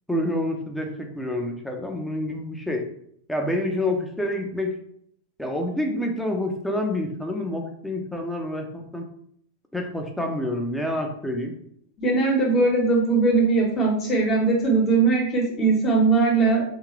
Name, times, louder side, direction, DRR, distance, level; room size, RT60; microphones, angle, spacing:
voice 1, 0.1-2.9 3.3-4.8 5.4-9.1 9.7-11.5, left 1 dB, 5° left, 2 dB, 0.8 m, -28 dB
voice 2, 12.0-16.6, right 3 dB, 30° left, 0 dB, 1.3 m, -20 dB
3.6 x 2.8 x 3.2 m, 0.68 s
hypercardioid pair, 100°, 0 cm